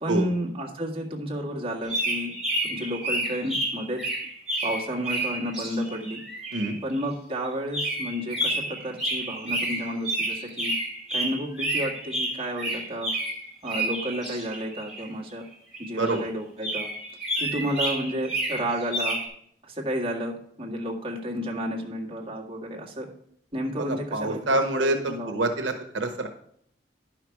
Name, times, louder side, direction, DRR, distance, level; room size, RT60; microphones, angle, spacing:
voice 1, 0.0-2.3 2.6-4.0 4.6-6.2 6.8-10.7 11.1-13.1 13.6-15.4 15.8-16.9 17.4-19.2 19.6-23.1 23.5-25.3, equal, 30° right, -2 dB, 1.9 m, -31 dB
sound 1, 1.8-7.0 7.7-15.1 15.7-16.3 16.6-19.3, right 1 dB, ahead, 3.4 m, -30 dB
voice 2, 23.8-26.3, right 2 dB, 90° right, 4 dB, 1.0 m, -26 dB
11.0 x 5.8 x 4.7 m, 0.66 s
head